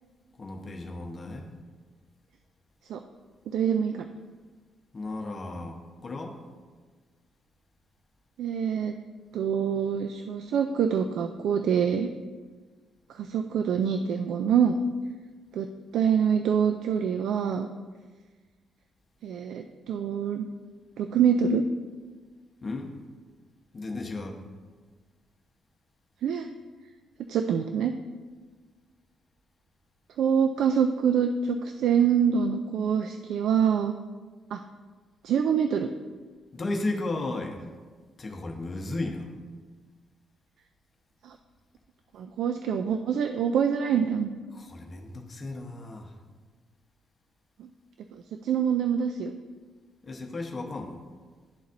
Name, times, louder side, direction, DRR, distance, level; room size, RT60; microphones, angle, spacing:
voice 1, 0.4-1.5 4.9-6.4 22.6-22.9 23.7-24.4 36.5-37.6 38.2-39.3 44.5-46.1 50.0-51.0, left 2 dB, 35° left, 2 dB, 0.9 m, -34 dB
voice 2, 3.5-4.1 8.4-9.0 9.3-12.1 13.1-14.8 15.5-15.7 15.9-17.7 19.2-20.5 21.0-21.6 26.2-26.5 27.3-27.9 30.2-33.9 34.5-34.6 35.2-35.9 41.2-41.4 42.1-44.3 47.6-47.7 48.1-49.3, right 7 dB, 75° right, 7 dB, 0.3 m, -25 dB
12.0 x 4.0 x 2.6 m, 1.4 s
cardioid pair, 90°, 0 cm